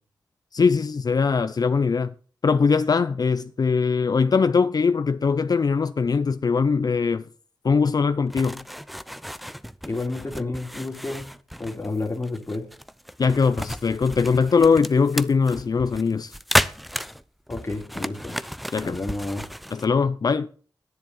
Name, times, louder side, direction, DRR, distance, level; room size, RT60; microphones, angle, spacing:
voice 1, 0.5-2.1 2.4-7.3 7.6-8.6 13.2-16.4 18.7-19.0 19.7-20.5, left 5 dB, 55° left, 0.5 m, -21 dB
sound 1, 8.3-19.9, equal, ahead, 0.7 m, -32 dB
voice 2, 9.8-11.3 11.6-12.7 17.5-18.4 18.8-19.4, left 2 dB, 30° left, 2.5 m, -30 dB
10.5 x 10.5 x 5.5 m
cardioid pair, 60°, 8 cm